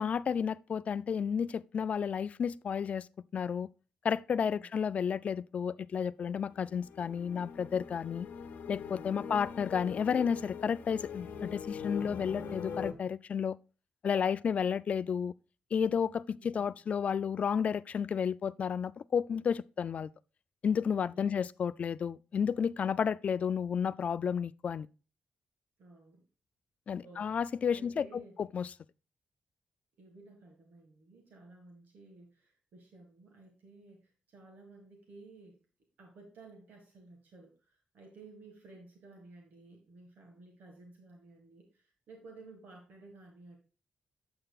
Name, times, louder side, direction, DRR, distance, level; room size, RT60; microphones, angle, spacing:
voice 1, 0.0-3.1 3.3-3.7 4.0-8.3 8.7-13.6 14.0-15.3 15.7-20.1 20.6-24.9 26.9-28.7, left 7 dB, 50° left, 0.3 m, -32 dB
sound 1, 6.4-12.9, left 6 dB, 80° left, 0.8 m, -42 dB
voice 2, 25.8-26.2 27.0-27.4 27.7-28.4 30.0-35.6 36.0-43.6, right 3 dB, 75° right, 1.8 m, -55 dB
8.8 x 7.7 x 2.4 m
wide cardioid pair, 130°, 3 cm